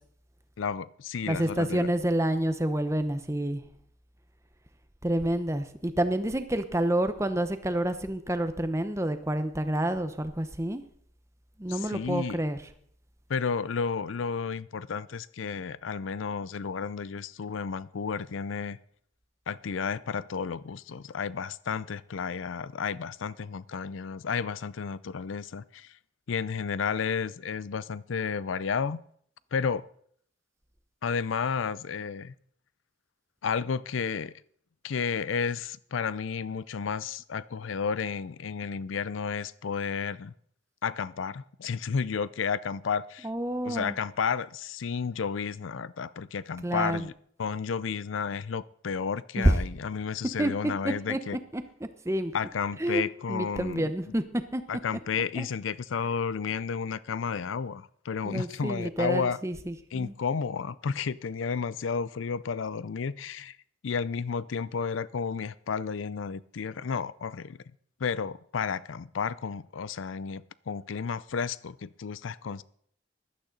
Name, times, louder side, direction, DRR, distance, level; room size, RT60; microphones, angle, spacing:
voice 1, 0.6-1.9 11.7-12.4 13.3-18.8 19.5-25.9 26.3-29.0 29.5-29.9 31.0-32.3 33.4-34.3 34.8-40.3 40.8-43.3 43.6-47.1 47.4-51.4 52.3-53.9 54.7-59.4 59.9-63.6 63.8-67.6 68.0-72.6, left 6 dB, 85° left, 0.5 m, -32 dB
voice 2, 1.3-3.6 5.0-10.8 11.6-12.6 43.2-44.0 46.6-47.1 49.4-49.6 50.4-50.5 50.8-51.2 51.5-51.6 52.0-52.3 52.8-53.0 53.3-54.2 54.5-54.6 55.4-55.5 58.2-60.1, right 1 dB, 15° right, 0.7 m, -28 dB
15.0 x 12.0 x 3.9 m
head